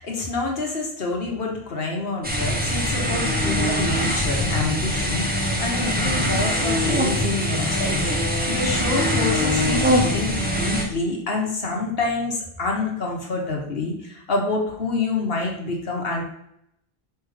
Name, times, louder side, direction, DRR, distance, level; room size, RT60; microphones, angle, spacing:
voice 1, 0.0-16.2, left 3 dB, 70° left, 0 dB, 1.6 m, -27 dB
sound 1, 2.2-10.8, equal, 10° right, 1.1 m, -23 dB
6.3 x 3.6 x 4.9 m, 0.75 s
omnidirectional pair, 1.0 m